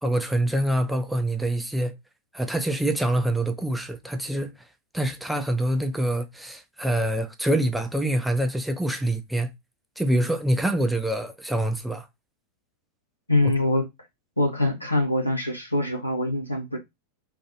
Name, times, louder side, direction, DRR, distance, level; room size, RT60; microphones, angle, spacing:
voice 1, 0.0-1.9 2.3-4.6 4.9-9.5 10.0-12.1 13.4-13.5, right 1 dB, 5° right, 0.4 m, -25 dB
voice 2, 13.3-13.8 14.4-16.8, left 1 dB, 85° left, 0.9 m, -24 dB
2.4 x 2.1 x 2.9 m
figure-of-eight pair, 90°, 0 cm